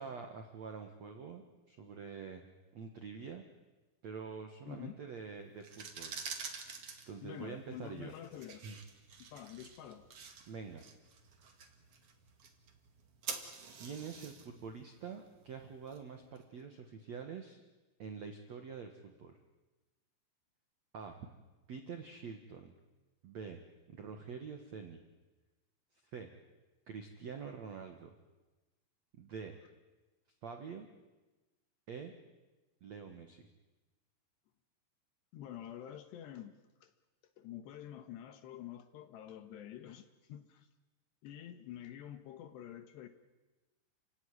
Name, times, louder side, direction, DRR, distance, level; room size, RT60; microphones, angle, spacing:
voice 1, 0.0-2.4 2.7-3.4 4.0-6.2 7.1-8.1 8.6-8.8 10.5-10.8 13.7-17.6 18.0-19.4 20.9-21.3 21.7-22.7 23.2-23.6 23.9-25.0 26.1-26.3 26.9-28.1 29.2-29.6 30.4-30.9 31.9-32.1 32.8-33.4, right 6 dB, 65° right, 5 dB, 1.7 m, -46 dB
sound 1, 5.5-16.4, right 5 dB, 45° right, 2.2 m, -48 dB
voice 2, 7.2-8.8 9.2-10.1 35.3-36.9 37.4-40.7 41.2-43.1, left 11 dB, 70° left, 9 dB, 3.0 m, -48 dB
30.0 x 17.0 x 9.8 m, 1.2 s
omnidirectional pair, 5.7 m